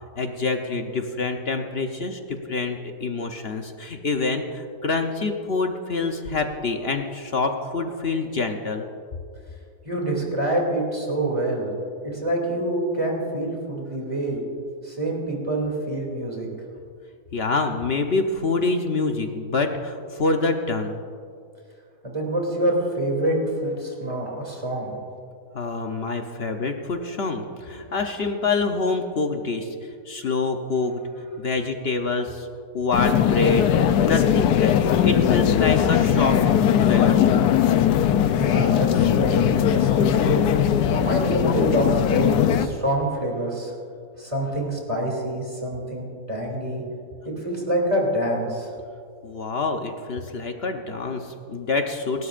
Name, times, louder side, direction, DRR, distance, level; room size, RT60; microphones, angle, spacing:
voice 1, 0.2-8.9 17.3-21.0 25.5-31.0 31.4-32.5 32.7-37.3 49.2-52.3, left 3 dB, 50° left, 5 dB, 0.9 m, -26 dB
voice 2, 9.8-11.7 12.0-14.4 14.8-16.5 22.0-25.0 38.4-40.4 40.8-43.7 44.1-46.8 47.2-48.7, right 1 dB, 20° right, -2 dB, 2.8 m, -26 dB
sound 1, 32.9-42.7, left 9 dB, 85° left, 1.2 m, -19 dB
28.5 x 12.5 x 2.5 m, 2.4 s
omnidirectional pair, 1.7 m